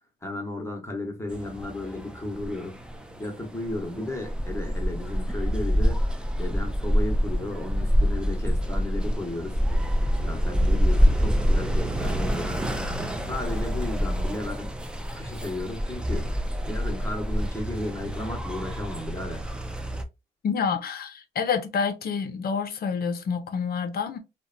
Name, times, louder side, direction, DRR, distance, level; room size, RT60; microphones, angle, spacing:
voice 1, 0.2-2.8 3.2-6.0 6.4-9.6 10.2-14.7 15.1-16.3 16.6-19.5, left 1 dB, 15° left, 1.0 m, -34 dB
sound 1, 1.3-20.0, equal, 5° right, 0.4 m, -26 dB
voice 2, 20.4-24.2, left 6 dB, 50° left, 0.6 m, -28 dB
2.7 x 2.1 x 2.5 m
cardioid pair, 90°, 20 cm